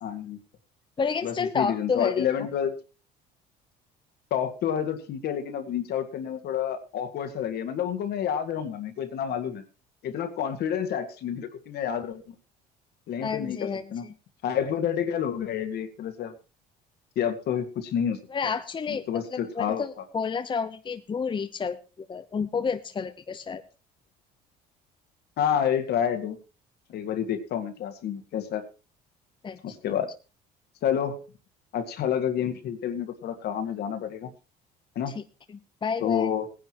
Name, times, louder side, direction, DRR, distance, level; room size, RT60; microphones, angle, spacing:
voice 1, 0.0-0.4 1.2-2.7 4.3-9.6 10.0-12.2 13.1-14.0 14.4-16.3 17.2-18.2 18.9-19.9 25.4-26.4 26.9-28.6 29.6-30.1 30.8-31.2 31.7-34.3 35.0-35.1 36.0-36.5, left 9 dB, 65° left, 8 dB, 1.9 m, -29 dB
voice 2, 1.0-2.3 13.2-14.1 18.3-19.0 19.6-23.6 29.4-29.6 35.2-35.3 35.8-36.3, left 5 dB, 25° left, 8 dB, 0.8 m, -30 dB
17.5 x 10.5 x 3.0 m, 0.32 s
supercardioid pair, 90°, 18 cm